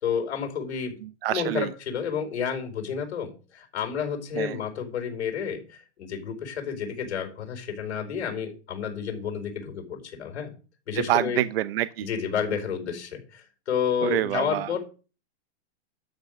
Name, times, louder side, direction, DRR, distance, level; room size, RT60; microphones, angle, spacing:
voice 1, 0.0-0.9 1.3-10.5 10.9-11.4 12.0-14.8, left 7 dB, 90° left, 4 dB, 4.9 m, -30 dB
voice 2, 1.2-1.7 4.4-4.6 11.1-12.1 14.0-14.8, right 14 dB, 60° right, 15 dB, 0.8 m, -26 dB
12.0 x 5.5 x 6.5 m, 0.35 s
supercardioid pair, 160°, 33 cm